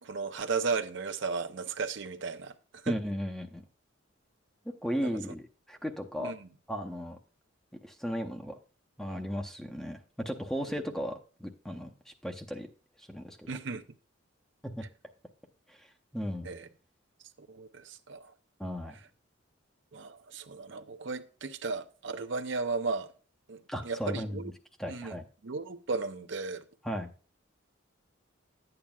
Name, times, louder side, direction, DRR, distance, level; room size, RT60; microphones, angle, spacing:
voice 1, 0.0-3.0 5.0-5.2 6.2-6.5 10.7-10.8 13.5-13.8 16.4-16.7 17.4-18.3 19.9-23.1 23.5-24.5 24.9-25.2 25.4-26.7, right 4 dB, 60° right, 0.6 m, -35 dB
voice 2, 2.9-3.6 4.6-6.3 6.7-7.2 7.8-8.5 9.0-12.7 13.0-13.5 14.8-14.9 15.7-15.9 16.1-16.5 18.6-19.0 23.7-24.4 24.8-25.2 26.8-27.1, equal, ahead, 0.7 m, -36 dB
11.0 x 8.8 x 2.3 m
head